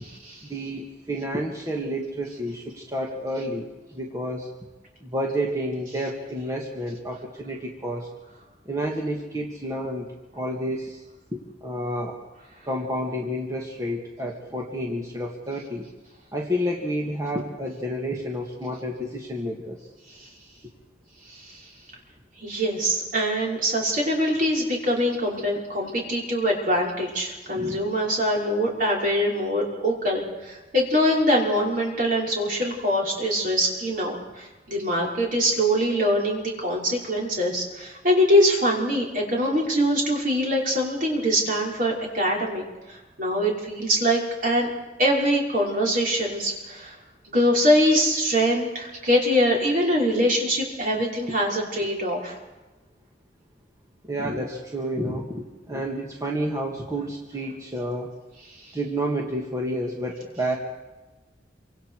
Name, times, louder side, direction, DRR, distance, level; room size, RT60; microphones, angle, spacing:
voice 1, 0.4-4.5 5.0-8.1 8.7-11.0 11.3-12.2 12.6-15.9 16.3-19.9 27.5-27.8 54.0-58.1 58.7-60.6, equal, 20° right, -1 dB, 2.1 m, -30 dB
voice 2, 21.3-21.6 22.4-44.7 45.0-47.0 47.2-52.4, equal, 50° right, -2 dB, 5.7 m, -23 dB
27.0 x 25.5 x 4.9 m, 1.2 s
head